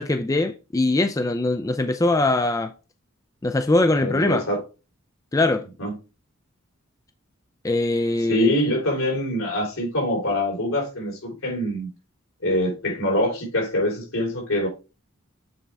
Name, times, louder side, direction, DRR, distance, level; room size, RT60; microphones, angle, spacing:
voice 1, 0.0-2.7 3.4-4.5 5.3-5.7 7.6-8.6, left 2 dB, 15° left, 0.4 m, -22 dB
voice 2, 4.0-4.6 5.8-5.9 8.3-11.9 12.4-14.7, left 1 dB, 80° left, 3.7 m, -24 dB
8.0 x 4.5 x 3.4 m
head